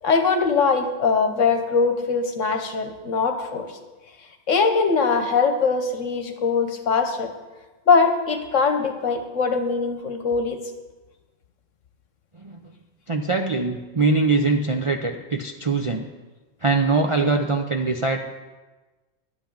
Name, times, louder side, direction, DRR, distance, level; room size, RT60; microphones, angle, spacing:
voice 1, 0.0-3.7 4.5-7.3 7.9-10.6, left 5 dB, 70° left, 6 dB, 1.4 m, -21 dB
voice 2, 13.1-16.1 16.6-18.2, right 3 dB, 45° right, 2 dB, 0.4 m, -22 dB
11.0 x 5.8 x 8.6 m, 1.2 s
omnidirectional pair, 1.4 m